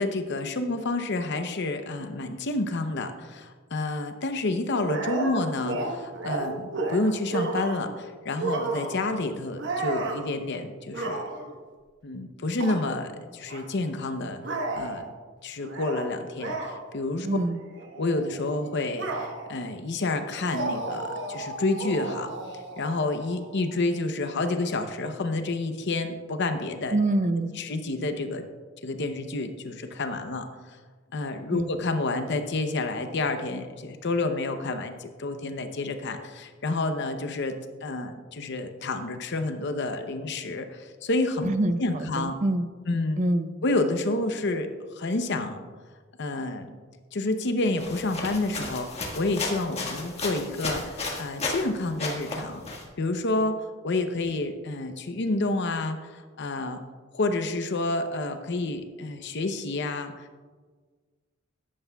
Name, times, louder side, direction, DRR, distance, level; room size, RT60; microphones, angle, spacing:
voice 1, 0.0-11.2 12.0-14.4 14.7-15.0 15.4-17.3 18.0-22.3 22.8-27.0 27.6-28.4 28.8-30.5 31.1-41.5 41.8-42.3 42.9-43.2 43.6-45.6 46.2-46.7 47.1-52.6 53.0-56.8 57.1-60.5, left 2 dB, 60° left, 7 dB, 0.7 m, -29 dB
sound 1, 4.9-7.9 8.4-9.1 9.6-10.3 10.9-11.6 12.6-12.8 13.5-13.6 14.4-15.1 15.6-16.1 16.4-16.7 17.3-17.5 17.8-19.6 20.4-23.8, right 2 dB, 60° right, 1.2 m, -32 dB
voice 2, 17.2-17.6 26.9-27.5 31.5-31.7 41.4-42.7 43.2-43.5, right 2 dB, 40° right, 10 dB, 0.6 m, -25 dB
sound 2, 47.8-51.7 52.0-52.8, left 2 dB, 30° left, 1.6 m, -33 dB
14.0 x 11.0 x 2.3 m, 1.5 s
head